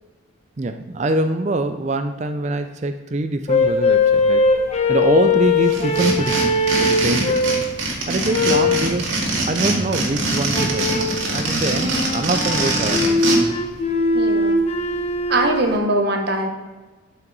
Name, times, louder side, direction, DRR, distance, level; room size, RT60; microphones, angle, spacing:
voice 1, 0.6-4.5 4.9-7.4 8.1-9.2 9.5-13.4, right 2 dB, 35° right, 8 dB, 0.4 m, -24 dB
sound 1, 3.5-7.7 8.3-8.9 10.5-11.2 11.7-15.7, left 3 dB, 30° left, 0.9 m, -20 dB
sound 2, 5.7-13.4, right 2 dB, 70° right, 2.0 m, -23 dB
voice 2, 8.1-8.4 11.7-12.0 14.1-14.6 15.3-16.5, right 1 dB, 50° right, 3 dB, 1.1 m, -22 dB
12.0 x 5.6 x 4.0 m, 1.3 s
head